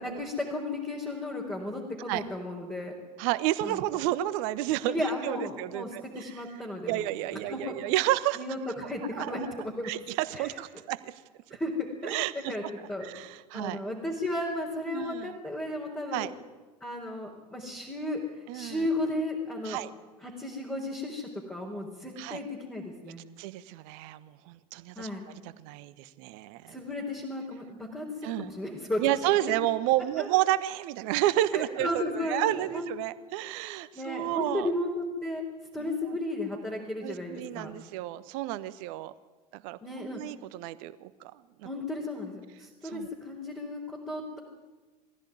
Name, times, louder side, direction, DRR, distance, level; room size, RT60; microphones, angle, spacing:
voice 1, 0.0-2.9 3.6-3.8 4.8-7.1 7.5-7.8 8.3-9.9 10.3-10.5 11.5-12.6 12.9-13.1 13.5-16.3 16.8-18.2 18.5-19.8 20.2-23.2 25.0-25.2 26.7-29.4 30.2-30.3 31.5-32.9 33.9-35.4 35.7-37.7 39.8-40.2 41.6-44.4, left 1 dB, 10° left, -2 dB, 4.5 m, -34 dB
voice 2, 3.2-6.0 6.9-8.4 9.1-9.5 9.8-10.0 10.3-11.1 12.0-12.5 13.0-13.8 14.9-15.4 16.1-16.3 18.5-18.9 19.6-19.9 22.2-22.4 23.4-25.1 25.6-26.7 28.2-28.5 29.0-34.7 37.0-39.1 39.5-41.1 42.9-43.1, right 14 dB, 50° right, 15 dB, 1.3 m, -30 dB
23.0 x 16.0 x 9.5 m, 1.3 s
figure-of-eight pair, 80°, 21 cm